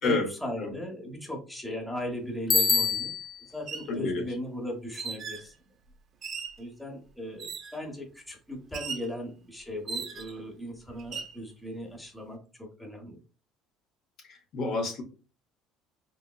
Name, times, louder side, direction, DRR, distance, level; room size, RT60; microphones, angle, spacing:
voice 1, 0.0-3.1 3.5-5.5 6.6-13.2, left 1 dB, 5° left, 1 dB, 0.8 m, -38 dB
Bicycle bell, 2.5-3.5, left 4 dB, 25° left, 0.4 m, -25 dB
sound 1, 2.6-2.7 3.5-3.9 4.9-5.5 6.2-6.6 7.4-7.8 8.7-9.1 9.9-10.4 11.0-11.4, right 5 dB, 40° right, 0.5 m, -38 dB
voice 2, 3.9-4.3 14.2-15.0, left 3 dB, 55° left, 3 dB, 0.7 m, -29 dB
3.8 x 2.0 x 2.2 m, 0.34 s
cardioid pair, 120°, 0 cm